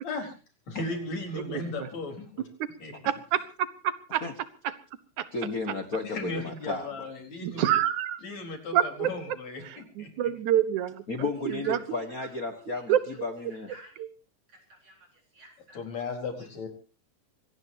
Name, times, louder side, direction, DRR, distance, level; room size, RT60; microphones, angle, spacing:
voice 1, 0.0-0.3 0.7-2.5 2.8-2.9 6.0-7.8 8.2-10.3 15.7-16.7, left 3 dB, 65° left, 4 dB, 5.5 m, -36 dB
voice 2, 3.1-3.4 3.8-4.2 4.6-4.7 5.2-5.3 7.4-8.2 8.7-9.4 9.7-11.8 12.9-13.0 14.0-14.1, right 11 dB, 80° right, 14 dB, 2.7 m, -27 dB
voice 3, 5.3-7.1 11.1-12.9 13.2-13.7, left 3 dB, 40° left, 7 dB, 1.5 m, -33 dB
voice 4, 11.6-12.0 12.5-12.8 13.5-13.9 14.5-15.8, right 1 dB, 50° right, 1 dB, 5.1 m, -52 dB
25.0 x 18.5 x 2.9 m, 0.34 s
omnidirectional pair, 3.4 m